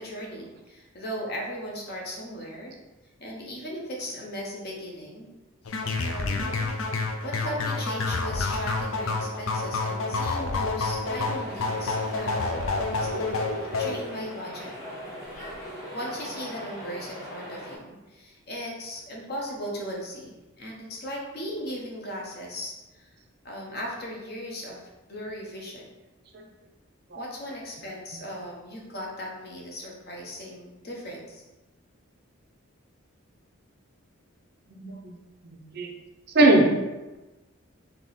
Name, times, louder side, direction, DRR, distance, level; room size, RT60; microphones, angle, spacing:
voice 1, 0.0-2.7 3.2-5.3 5.7-6.7 7.2-12.6 13.0-14.7 15.9-22.7 23.4-25.9 27.1-31.4, equal, 50° left, -2 dB, 0.9 m, -37 dB
sound 1, 5.6-14.0, left 3 dB, 75° left, 0.5 m, -28 dB
sound 2, 11.0-17.8, equal, 15° left, 1.1 m, -40 dB
voice 2, 34.7-35.1 35.5-35.9 36.3-36.8, right 2 dB, 50° right, 2 dB, 0.5 m, -21 dB
3.5 x 2.8 x 4.1 m, 1.1 s
head